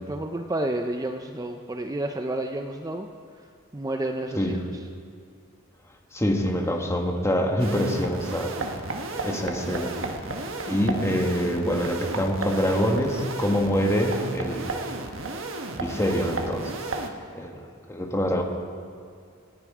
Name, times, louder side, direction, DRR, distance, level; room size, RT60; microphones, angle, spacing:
voice 1, 0.1-3.1 3.7-4.5, right 1 dB, 15° right, 5 dB, 0.6 m, -30 dB
voice 2, 6.1-8.5 9.2-9.9 10.7-14.8 15.8-16.7 17.3-17.5 17.9-18.4, equal, 15° left, 2 dB, 1.5 m, -25 dB
sound 1, 7.6-17.1, right 2 dB, 70° right, 1.4 m, -33 dB
27.0 x 9.6 x 4.9 m, 2.2 s
head